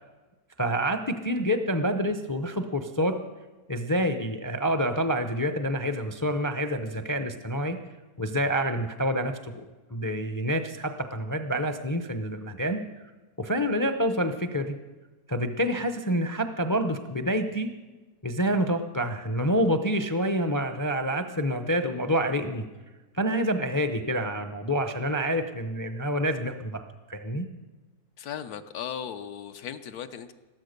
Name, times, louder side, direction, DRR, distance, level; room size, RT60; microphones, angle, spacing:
voice 1, 0.6-3.2 3.7-7.8 8.2-9.6 9.9-12.8 13.4-14.7 15.3-17.7 18.2-22.6 23.2-26.8 27.1-27.5, equal, 25° left, 7 dB, 0.4 m, -27 dB
voice 2, 28.2-30.3, left 8 dB, 75° left, 9 dB, 1.3 m, -37 dB
14.5 x 13.0 x 6.6 m, 1.2 s
omnidirectional pair, 1.6 m